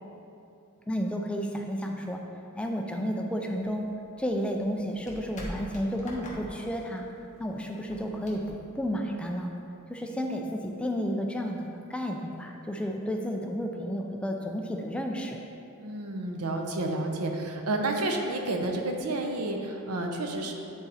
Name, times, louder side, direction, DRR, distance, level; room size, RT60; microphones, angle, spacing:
voice 1, 0.9-2.2 2.5-3.9 4.2-7.0 7.4-9.5 9.9-15.4, equal, 5° left, 1 dB, 0.4 m, -32 dB
sound 1, 3.6-9.5, left 1 dB, 35° left, 1.2 m, -45 dB
voice 2, 15.8-20.5, right 2 dB, 85° right, 2 dB, 0.8 m, -30 dB
9.6 x 4.0 x 4.2 m, 2.7 s
head